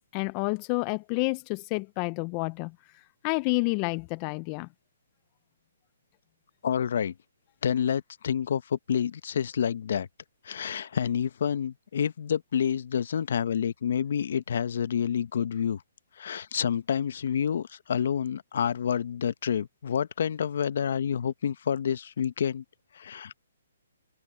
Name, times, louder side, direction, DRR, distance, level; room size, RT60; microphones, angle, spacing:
voice 1, 0.0-2.7 3.2-4.7, left 28 dB, 25° left, 0.3 m, -29 dB
voice 2, 6.6-7.1 7.6-10.1 10.4-15.8 16.2-22.6 22.9-23.4, left 8 dB, 60° left, 0.9 m, -28 dB
hypercardioid pair, 155°, 0 cm